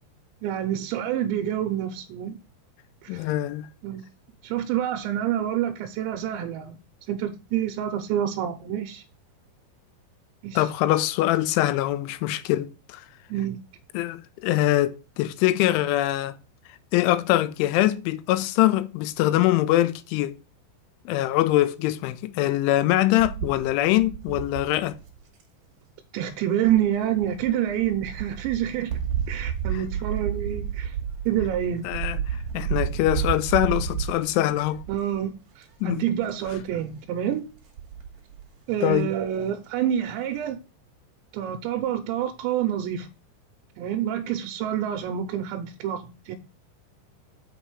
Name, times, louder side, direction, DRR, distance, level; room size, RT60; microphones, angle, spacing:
voice 1, 0.4-2.4 3.0-3.2 3.8-4.0 4.4-6.8 7.1-9.0 10.4-10.6 13.3-13.6 26.1-28.9 29.3-31.0 31.3-31.9 34.9-37.5 38.7-40.6 41.3-43.1 43.8-46.3, right 10 dB, 80° right, 2.9 m, -27 dB
voice 2, 3.1-3.7 10.6-13.1 13.9-16.4 16.9-20.4 21.1-25.0 31.8-34.8 35.8-36.0 38.8-39.1, left 15 dB, 85° left, 3.1 m, -23 dB
sound 1, 23.2-25.4 26.6-35.2 35.6-35.9 36.2-36.7 37.6-38.4 38.9-39.0 39.3-39.4, right 9 dB, 50° right, 2.4 m, -31 dB
8.4 x 5.3 x 4.7 m
omnidirectional pair, 5.5 m